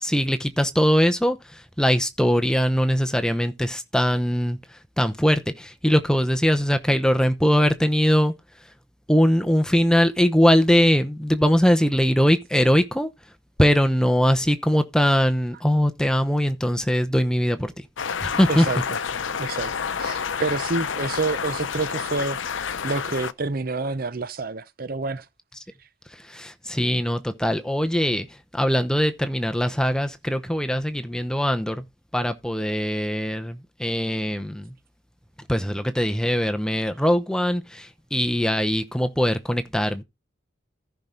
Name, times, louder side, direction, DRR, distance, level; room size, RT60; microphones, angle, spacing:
voice 1, 0.0-1.4 1.8-4.6 5.0-8.3 9.1-13.1 13.6-17.7 18.2-18.6 26.3-28.3 28.5-31.8 32.1-34.7 35.5-40.0, equal, 5° left, 0.8 m, -21 dB
sound 1, 18.0-23.3, left 6 dB, 80° left, 0.6 m, -29 dB
voice 2, 18.5-18.8 19.4-19.7 20.0-22.4 22.8-25.2, right 3 dB, 50° right, 0.7 m, -28 dB
14.5 x 5.9 x 3.8 m
head